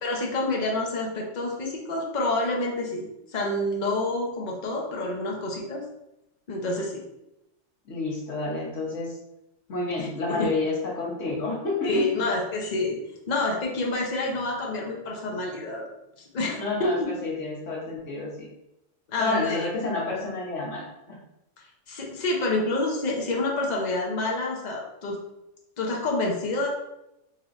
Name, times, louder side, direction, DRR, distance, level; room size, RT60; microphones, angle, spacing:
voice 1, 0.0-5.8 6.5-7.0 10.0-10.5 11.8-13.0 13.3-15.8 16.3-16.9 19.1-19.7 21.9-25.2 25.8-26.7, left 2 dB, 40° left, -1 dB, 0.7 m, -28 dB
voice 2, 7.8-9.2 9.7-12.2 16.6-18.5 19.2-21.2, left 3 dB, 65° left, -5 dB, 1.5 m, -30 dB
4.2 x 3.0 x 2.5 m, 0.87 s
omnidirectional pair, 1.4 m